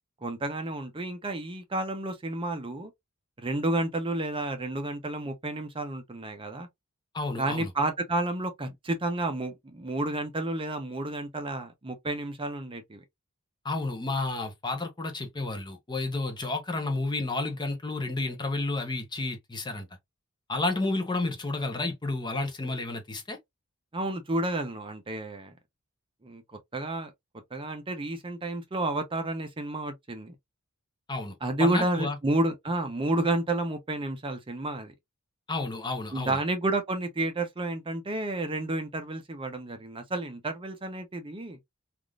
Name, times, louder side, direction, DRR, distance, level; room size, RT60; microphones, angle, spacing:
voice 1, 0.2-2.9 3.4-6.7 7.4-13.0 23.9-25.5 26.2-26.4 26.7-27.1 27.5-30.3 31.4-34.9 36.1-41.6, right 2 dB, 25° right, 0.6 m, -31 dB
voice 2, 7.1-7.7 13.6-19.9 20.5-23.4 31.1-32.2 35.5-36.4, left 2 dB, 20° left, 0.7 m, -31 dB
3.4 x 2.4 x 2.3 m
head